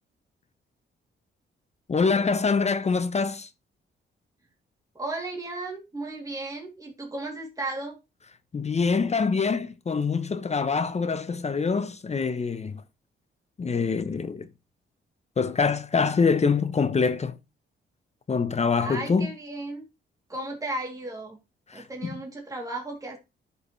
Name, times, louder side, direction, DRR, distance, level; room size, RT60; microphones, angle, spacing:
voice 1, 1.9-3.5 8.5-12.8 13.6-14.5 15.4-17.4 18.3-19.3 21.7-22.1, left 5 dB, 30° left, 0.7 m, -25 dB
voice 2, 4.9-8.0 18.8-19.8 20.3-21.4 21.7-23.2, right 2 dB, 15° right, 2.7 m, -35 dB
11.0 x 5.4 x 3.1 m
cardioid pair, 105°, 21 cm